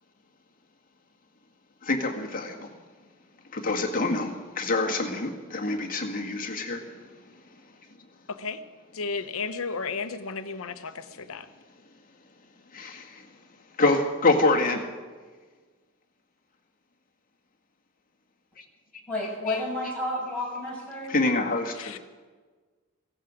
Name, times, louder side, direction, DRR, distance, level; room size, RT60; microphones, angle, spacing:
voice 1, 1.8-2.7 3.5-7.1 12.7-13.3 13.8-14.8 18.6-18.7 19.5-19.6 21.1-22.0, left 2 dB, 40° left, 1 dB, 1.8 m, -26 dB
voice 2, 8.3-8.6 8.9-11.5 21.8-22.0, left 4 dB, 70° left, 11 dB, 0.9 m, -33 dB
voice 3, 19.1-21.1, left 1 dB, 5° left, -5 dB, 6.4 m, -31 dB
16.5 x 15.5 x 5.1 m, 1.4 s
head